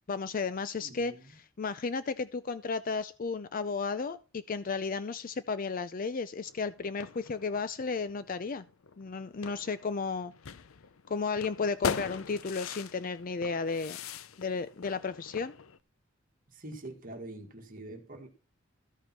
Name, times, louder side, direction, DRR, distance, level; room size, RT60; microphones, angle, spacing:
voice 1, 0.1-8.6 9.0-10.3 11.1-14.0 14.4-15.5, left 4 dB, 40° left, 0.5 m, -33 dB
voice 2, 0.8-1.4 16.5-18.3, right 2 dB, 40° right, 1.9 m, -45 dB
sound 1, 6.4-15.8, left 6 dB, 90° left, 0.6 m, -41 dB
14.0 x 5.2 x 5.9 m
head